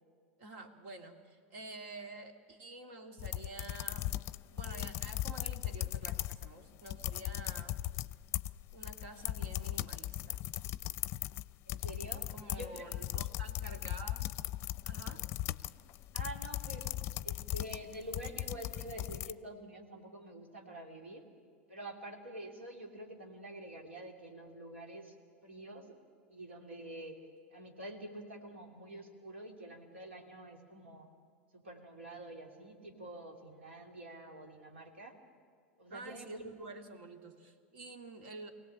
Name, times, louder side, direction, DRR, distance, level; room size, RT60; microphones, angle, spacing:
voice 1, 0.4-4.1 4.5-7.8 8.7-10.4 12.3-14.3 14.8-15.3 35.9-38.5, right 2 dB, 70° right, 5 dB, 2.5 m, -49 dB
sound 1, 3.2-6.5 6.8-19.3, left 15 dB, 45° left, 0.5 m, -38 dB
voice 2, 11.7-12.9 16.1-21.3 21.7-25.2 25.4-25.9 26.3-27.2 27.5-31.1 31.5-35.2 35.8-36.7, right 1 dB, 90° right, 3 dB, 2.9 m, -47 dB
23.0 x 17.5 x 8.6 m, 2.2 s
hypercardioid pair, 95°, 6 cm